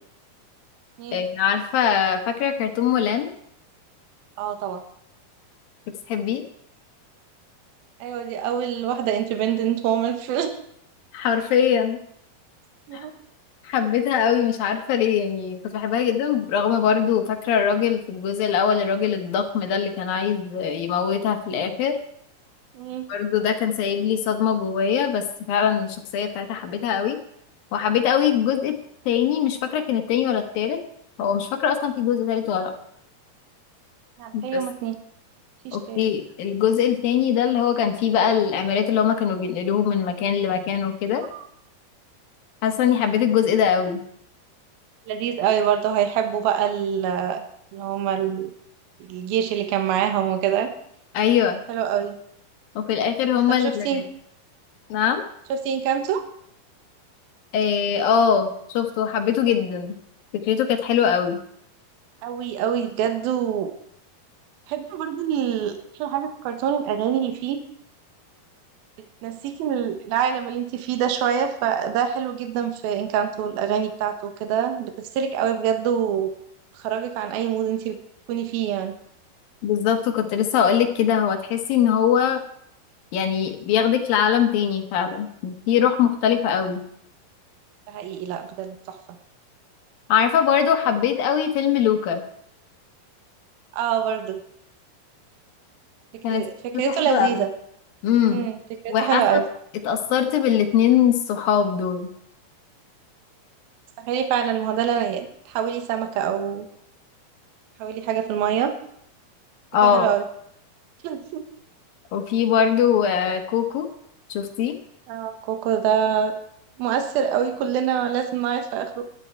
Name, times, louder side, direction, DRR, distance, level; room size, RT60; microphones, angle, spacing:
voice 1, 1.1-3.3 6.1-6.4 11.1-12.0 12.9-13.0 13.6-21.9 23.1-27.2 27.7-28.7 29.1-30.8 31.2-32.7 34.3-34.6 35.7-41.2 42.6-44.0 51.1-51.6 52.8-54.0 54.9-55.2 57.5-59.9 60.3-61.4 79.6-82.4 83.1-86.8 90.1-92.2 96.2-96.4 96.7-97.5 98.0-98.4 98.9-99.4 99.8-102.1 109.7-110.1 112.1-113.9 114.3-114.8, left 8 dB, 70° left, 6 dB, 3.1 m, -22 dB
voice 2, 4.4-4.8 8.0-10.6 12.9-13.1 22.7-23.1 34.2-35.0 35.6-36.1 41.3-41.5 45.1-47.4 47.7-48.5 49.0-50.7 51.7-52.2 53.5-54.0 55.6-56.2 62.2-63.7 64.7-67.6 69.2-76.3 76.7-78.0 78.3-79.0 87.9-89.2 93.7-94.4 96.1-97.5 98.3-98.6 98.8-99.4 104.0-106.7 107.8-108.7 109.8-110.2 111.0-111.4 115.1-116.3 116.8-119.1, right 9 dB, 75° right, 7 dB, 3.0 m, -25 dB
17.5 x 11.5 x 4.6 m, 0.70 s
omnidirectional pair, 4.6 m